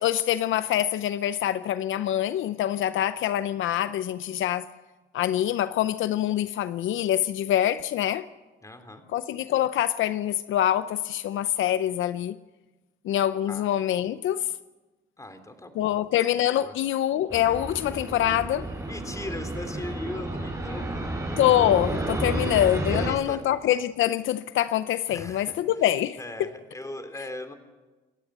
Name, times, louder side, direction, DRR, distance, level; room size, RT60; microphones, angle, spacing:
voice 1, 0.0-4.7 5.1-8.3 9.1-12.4 13.0-14.5 15.8-18.7 21.4-26.5, left 12 dB, 80° left, 0.7 m, -25 dB
voice 2, 8.6-9.0 13.5-13.7 15.2-16.0 16.4-16.7 18.9-21.1 22.8-23.4 25.1-25.5 26.2-27.5, left 2 dB, 15° left, 3.4 m, -39 dB
Fixed-wing aircraft airplane, 17.3-23.1, right 1 dB, 15° right, 6.5 m, -31 dB
28.5 x 15.5 x 8.2 m
cardioid pair, 90°, 20 cm